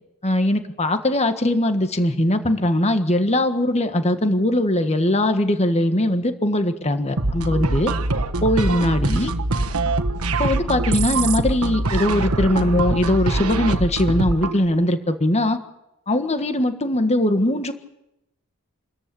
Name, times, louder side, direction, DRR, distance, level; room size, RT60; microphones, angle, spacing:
voice 1, 0.2-7.9 8.4-9.3 10.4-15.6 16.1-17.7, left 1 dB, 30° left, 8 dB, 1.6 m, -20 dB
sound 1, 7.2-14.6, right 2 dB, 90° right, 1.4 m, -23 dB
27.0 x 14.0 x 8.5 m, 0.89 s
head